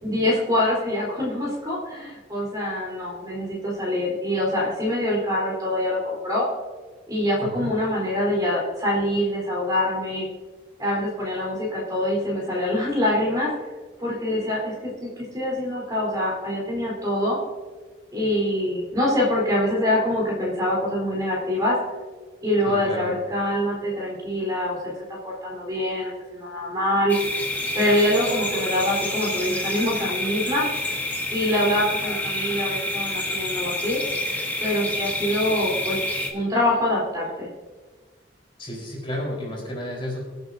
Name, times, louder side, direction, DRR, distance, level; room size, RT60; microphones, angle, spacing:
voice 1, 0.0-6.5 7.1-10.3 10.8-13.5 14.0-17.4 18.1-21.8 22.4-24.9 25.2-27.2 27.7-30.7 31.3-34.0 34.6-36.0 36.3-37.5, left 1 dB, 20° right, -4 dB, 3.6 m, -25 dB
voice 2, 7.4-7.7 22.7-23.1 38.6-40.3, left 1 dB, 25° left, -2 dB, 4.0 m, -32 dB
sound 1, 27.1-36.3, left 1 dB, 10° left, 1.3 m, -28 dB
24.5 x 8.1 x 2.7 m, 1.4 s
head